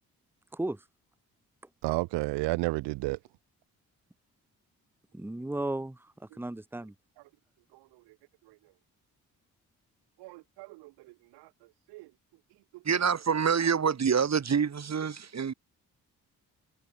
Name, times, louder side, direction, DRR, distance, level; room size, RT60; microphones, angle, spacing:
voice 1, 1.8-3.2 10.2-10.9 11.9-12.1, right 22 dB, 90° right, 0.6 m, -31 dB
voice 2, 5.1-6.9, right 2 dB, 5° right, 1.0 m, -35 dB
voice 3, 12.8-15.5, right 6 dB, 40° right, 1.4 m, -26 dB
supercardioid pair, 50°, 40 cm